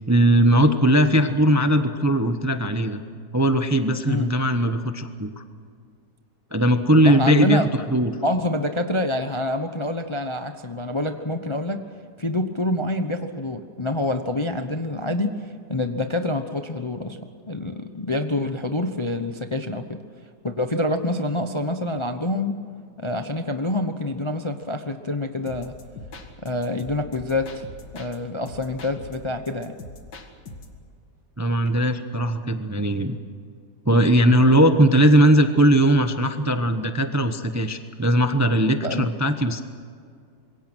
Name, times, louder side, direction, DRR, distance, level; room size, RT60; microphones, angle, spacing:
voice 1, 0.1-3.0 3.3-5.4 6.5-7.6 7.9-8.1 31.4-33.2 33.8-39.6, right 1 dB, 15° right, 8 dB, 0.7 m, -19 dB
voice 2, 7.0-7.7 8.2-11.8 12.2-17.2 17.5-20.0 20.4-22.6 23.0-25.7 26.4-27.6 27.9-29.7 38.8-39.1, left 1 dB, 25° left, 7 dB, 0.7 m, -26 dB
sound 1, 25.5-28.2 28.5-30.8, left 2 dB, 80° left, 2.6 m, -41 dB
26.5 x 22.5 x 6.3 m, 2.2 s
omnidirectional pair, 1.9 m